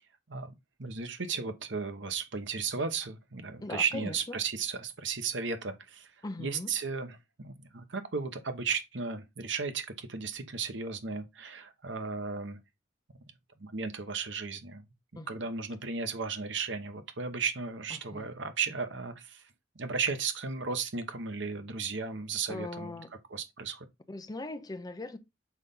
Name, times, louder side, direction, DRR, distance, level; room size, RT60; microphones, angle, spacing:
voice 1, 0.8-6.1 6.4-12.6 13.6-14.8 15.1-19.4 19.7-22.9 23.3-23.9, right 5 dB, 75° right, 1.1 m, -35 dB
voice 2, 3.6-4.4 6.2-6.7 15.2-15.5 18.1-18.3 22.5-23.1 24.1-25.2, left 2 dB, 20° left, 0.7 m, -39 dB
6.1 x 4.1 x 3.7 m
head